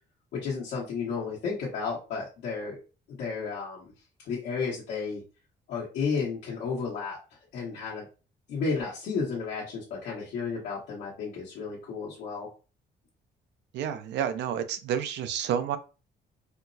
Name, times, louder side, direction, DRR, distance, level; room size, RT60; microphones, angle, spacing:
voice 1, 0.3-2.8 3.1-3.9 4.2-5.2 5.7-7.2 7.5-8.0 8.5-12.5, left 5 dB, 90° left, 1.2 m, -32 dB
voice 2, 13.7-15.8, right 9 dB, 85° right, 0.5 m, -30 dB
4.3 x 2.0 x 2.6 m
cardioid pair, 110°, 18 cm